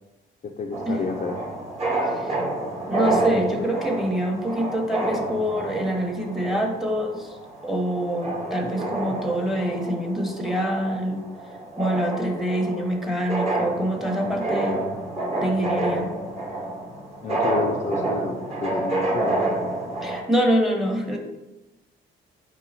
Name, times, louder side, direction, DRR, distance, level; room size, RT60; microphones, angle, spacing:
voice 1, 0.4-1.4 8.8-9.2 14.2-15.0 17.2-19.5, left 4 dB, 40° left, 3 dB, 0.4 m, -31 dB
sound 1, 0.7-20.2, right 2 dB, 30° right, 1.1 m, -29 dB
voice 2, 2.0-2.4 2.9-7.4 7.6-11.2 11.8-14.8 15.4-16.1 20.0-21.2, equal, ahead, 2 dB, 0.8 m, -25 dB
4.6 x 2.7 x 4.1 m, 1.0 s
cardioid pair, 90°, 20 cm